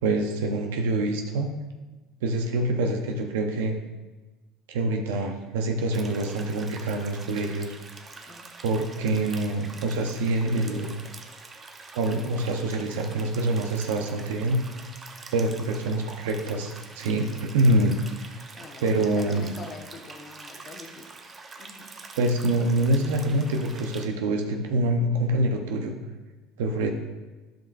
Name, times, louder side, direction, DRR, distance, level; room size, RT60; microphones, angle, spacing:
voice 1, 0.0-1.5 2.2-3.8 4.7-7.8 8.6-10.9 11.9-14.6 15.3-18.3 18.8-19.5 22.2-25.9 26.6-26.9, right 2 dB, 85° right, 3 dB, 0.7 m, -25 dB
sound 1, 5.9-24.1, right 3 dB, 30° right, 0.9 m, -45 dB
voice 2, 18.6-21.1 21.6-21.9, left 4 dB, 40° left, 3 dB, 1.2 m, -44 dB
12.0 x 5.2 x 2.6 m, 1.2 s
supercardioid pair, 85°, 0 cm